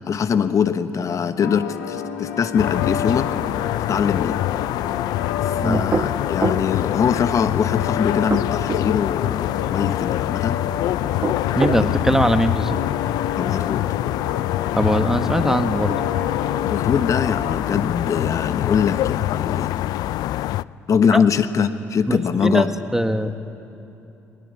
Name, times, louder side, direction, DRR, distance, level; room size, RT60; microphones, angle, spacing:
voice 1, 0.1-3.3 3.9-4.4 5.4-10.6 11.8-12.2 13.4-13.8 16.7-19.7 20.9-22.7, left 7 dB, 50° left, 10 dB, 1.1 m, -22 dB
sound 1, 1.4-17.6, left 8 dB, 85° left, 1.6 m, -31 dB
sound 2, 2.6-20.6, left 15 dB, 65° left, 0.4 m, -25 dB
sound 3, 5.7-6.7 8.1-8.9 11.0-11.9, right 4 dB, 35° right, 1.0 m, -25 dB
voice 2, 11.6-12.8 14.8-16.0 21.1-21.2 22.1-23.3, right 1 dB, 5° right, 8 dB, 1.7 m, -21 dB
21.5 x 20.5 x 8.5 m, 2.9 s
hypercardioid pair, 50°, 7 cm